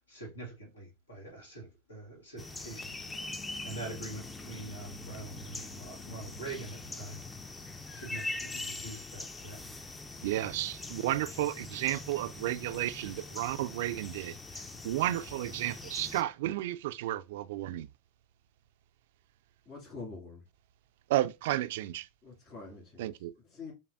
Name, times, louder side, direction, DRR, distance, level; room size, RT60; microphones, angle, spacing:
voice 1, 0.1-3.0 3.6-7.2 7.9-9.6, right 2 dB, 90° left, 1.4 m, -44 dB
sound 1, 2.4-16.2, left 2 dB, 15° left, 0.4 m, -43 dB
sound 2, 4.3-8.4, right 1 dB, 65° left, 0.9 m, -57 dB
voice 2, 10.2-14.4 14.8-17.9 21.1-22.1 23.0-23.3, right 14 dB, 65° right, 0.3 m, -32 dB
voice 3, 19.7-20.4 22.2-23.1 23.4-23.7, left 4 dB, 40° left, 2.2 m, -45 dB
5.4 x 2.2 x 2.4 m
hypercardioid pair, 90°, 0 cm